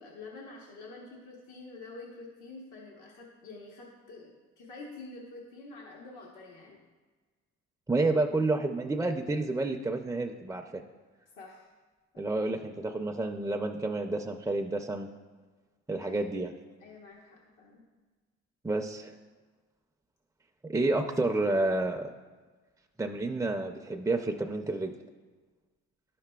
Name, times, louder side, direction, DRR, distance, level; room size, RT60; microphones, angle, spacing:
voice 1, 0.0-6.8 11.4-11.6 16.0-16.3 16.8-17.9, left 3 dB, 90° left, -3 dB, 1.1 m, -47 dB
voice 2, 7.9-10.8 12.2-15.1 15.9-16.5 18.6-19.1 20.7-22.1 23.0-24.9, right 2 dB, 10° right, 3 dB, 0.4 m, -30 dB
11.5 x 5.8 x 2.3 m, 1.3 s
cardioid pair, 90°, 30 cm